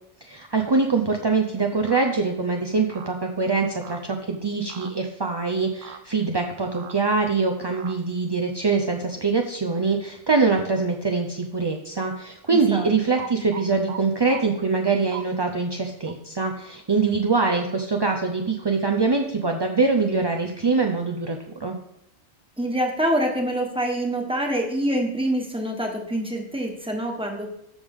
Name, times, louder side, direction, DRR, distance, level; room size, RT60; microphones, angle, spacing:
voice 1, 0.2-21.8, right 4 dB, 30° right, 3 dB, 0.4 m, -23 dB
sound 1, 1.9-2.1 2.9-3.1 3.8-4.0 4.7-4.9 5.8-6.0 6.7-7.0 7.7-8.0 13.2-14.0 14.3-14.4 15.1-15.3 16.1-16.2, right 9 dB, 80° right, 1.0 m, -38 dB
voice 2, 12.5-12.9 22.6-27.5, right 1 dB, 5° right, 1 dB, 1.3 m, -26 dB
13.0 x 5.2 x 3.7 m, 0.80 s
omnidirectional pair, 1.3 m